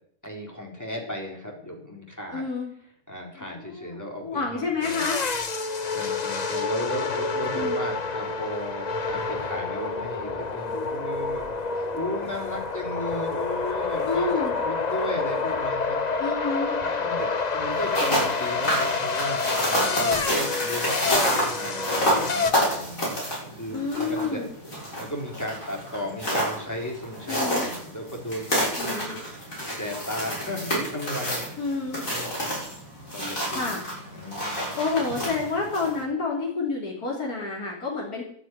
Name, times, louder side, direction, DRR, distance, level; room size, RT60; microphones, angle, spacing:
voice 1, 0.2-2.4 3.1-5.1 5.9-16.0 16.8-23.1 23.5-24.5 25.0-31.6 32.0-32.5 33.1-33.8 34.1-34.8, equal, 10° left, 0 dB, 3.8 m, -35 dB
voice 2, 2.3-2.7 3.4-5.2 7.5-7.8 14.1-14.5 16.2-16.8 23.7-24.5 27.3-27.7 28.8-29.1 31.6-32.0 33.5-33.8 34.8-38.2, left 4 dB, 75° left, -3 dB, 3.6 m, -29 dB
sound 1, 4.8-22.5, left 4 dB, 30° left, 0.9 m, -28 dB
sound 2, 17.7-36.0, equal, 60° left, 7.6 m, -29 dB
11.5 x 9.8 x 9.4 m, 0.64 s
omnidirectional pair, 1.6 m